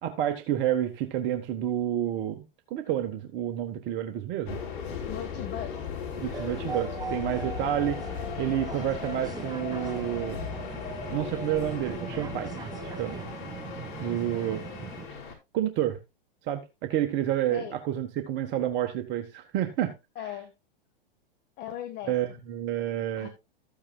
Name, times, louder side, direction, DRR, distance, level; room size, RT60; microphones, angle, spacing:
voice 1, 0.0-2.4 2.7-4.6 6.2-8.0 8.4-10.5 11.1-13.2 14.0-14.6 15.5-16.0 16.4-19.9 22.1-23.3, right 11 dB, 40° right, 1.3 m, -29 dB
sound 1, 4.5-15.3, left 6 dB, 60° left, 4.8 m, -37 dB
voice 2, 5.1-5.8 17.5-17.8 20.1-20.5 21.6-22.1 23.2-23.3, left 11 dB, 35° left, 1.4 m, -37 dB
sound 2, 6.1-15.1, right 6 dB, 15° right, 0.8 m, -40 dB
14.0 x 8.7 x 2.3 m
hypercardioid pair, 110°, 29 cm